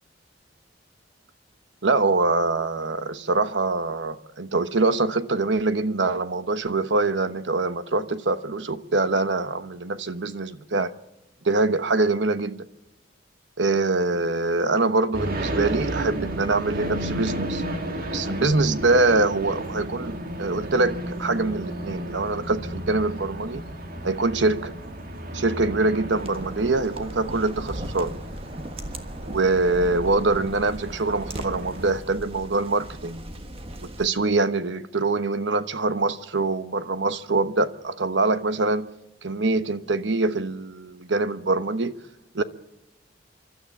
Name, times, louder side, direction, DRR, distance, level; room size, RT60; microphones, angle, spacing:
voice 1, 1.8-10.9 11.4-12.7 13.6-17.6 18.1-23.6 24.0-24.7 25.3-28.1 29.2-33.2 34.0-38.9 39.2-42.0 42.3-42.4, right 3 dB, 70° right, 1.0 m, -24 dB
sound 1, 15.1-32.0, right 1 dB, 55° right, 2.1 m, -33 dB
sound 2, 26.1-34.1, right 1 dB, 30° right, 1.5 m, -38 dB
29.0 x 12.5 x 7.4 m
head